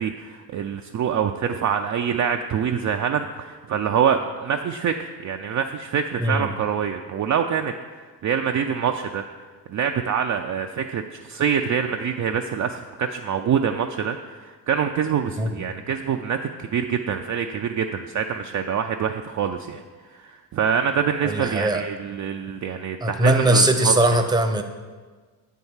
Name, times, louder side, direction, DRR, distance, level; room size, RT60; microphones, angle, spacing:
voice 1, 0.0-7.7 8.2-9.2 9.7-11.0 11.3-19.8 20.1-23.9, right 7 dB, 40° right, 4 dB, 0.4 m, -25 dB
voice 2, 21.2-21.8 23.0-24.6, right 1 dB, 10° right, 6 dB, 0.7 m, -20 dB
7.8 x 4.6 x 5.5 m, 1.4 s
supercardioid pair, 70°, 48 cm